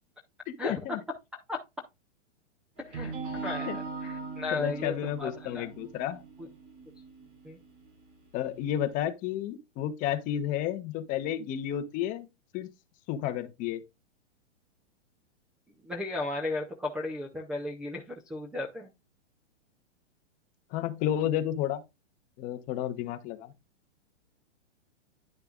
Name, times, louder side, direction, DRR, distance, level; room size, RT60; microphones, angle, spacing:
voice 1, 0.5-1.0 3.7-3.8 4.5-6.2 8.3-12.3 12.5-12.7 13.1-13.8 20.7-21.8 22.4-23.5, left 11 dB, 20° left, 0.8 m, -31 dB
sound 1, 2.8-8.7, right 4 dB, 75° right, 5.4 m, -40 dB
voice 2, 3.4-5.7 7.4-7.6 15.8-18.9, left 2 dB, 5° right, 0.5 m, -35 dB
10.5 x 6.6 x 2.4 m
hypercardioid pair, 150°, 36 cm